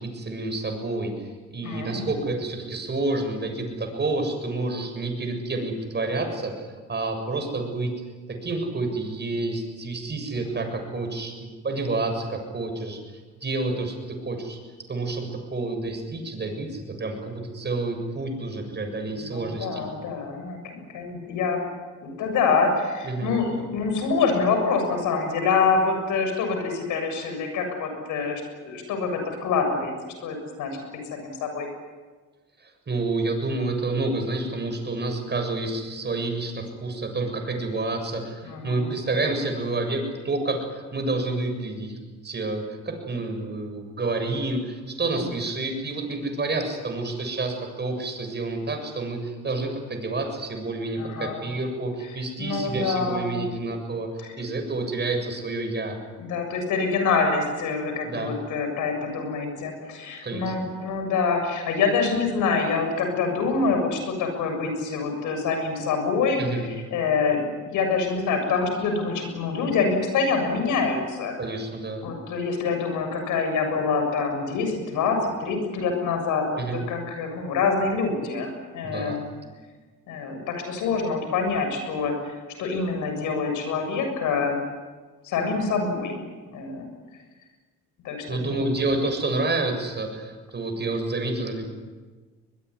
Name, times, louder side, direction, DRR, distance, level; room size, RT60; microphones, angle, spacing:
voice 1, 0.0-8.0 8.3-13.0 13.4-14.6 14.9-19.9 23.0-23.3 32.6-42.0 42.2-54.1 54.4-56.0 58.1-58.3 60.2-60.5 66.4-66.7 71.4-72.1 76.6-76.8 78.8-79.5 88.3-91.6, right 2 dB, 35° right, 5 dB, 7.3 m, -29 dB
voice 2, 1.6-2.1 10.3-10.6 19.1-21.6 22.0-30.8 31.0-31.7 38.4-38.9 45.1-45.3 51.0-51.4 52.0-52.1 52.4-53.4 54.2-54.3 56.2-71.3 72.0-79.2 80.1-84.6 85.2-86.2 86.5-86.9 88.0-88.6, left 4 dB, 90° left, 5 dB, 7.2 m, -26 dB
22.5 x 21.5 x 9.9 m, 1.4 s
cardioid pair, 90°, 30 cm